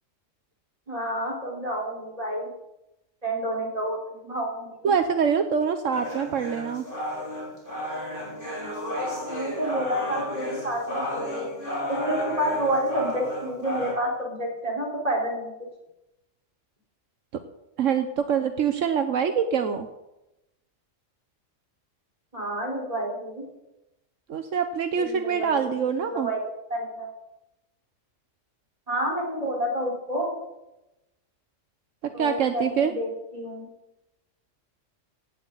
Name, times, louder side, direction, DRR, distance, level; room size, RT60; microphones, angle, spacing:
voice 1, 0.9-2.5 3.2-4.9 9.3-11.5 11.9-15.5 22.3-23.4 25.0-25.7 26.1-26.4 26.7-27.1 28.9-30.3 32.1-33.7, right 1 dB, 30° right, -2 dB, 4.6 m, -29 dB
voice 2, 4.8-6.8 17.3-17.4 17.8-19.9 24.3-26.3 32.0-32.9, right 7 dB, 75° right, 8 dB, 1.3 m, -25 dB
sound 1, 5.9-13.9, left 1 dB, 40° left, 4.8 m, -32 dB
17.5 x 15.0 x 4.1 m, 0.92 s
omnidirectional pair, 1.3 m